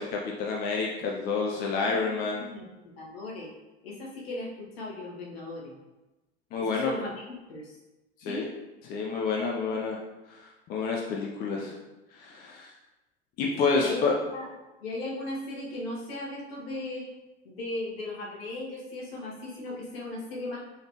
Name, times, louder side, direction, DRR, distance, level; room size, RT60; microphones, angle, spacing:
voice 1, 0.0-2.4 6.5-6.9 8.2-8.4 8.9-10.0 10.3-10.4 10.7-11.8 12.2-12.7 13.4-14.1, left 4 dB, 30° left, -1 dB, 0.5 m, -28 dB
voice 2, 1.8-2.7 3.0-3.5 3.8-5.7 6.6-7.8 8.3-8.5 13.7-14.5 14.8-17.1 17.4-20.7, left 2 dB, 60° left, -3 dB, 1.4 m, -37 dB
3.9 x 3.5 x 2.9 m, 1.1 s
figure-of-eight pair, 80°, 34 cm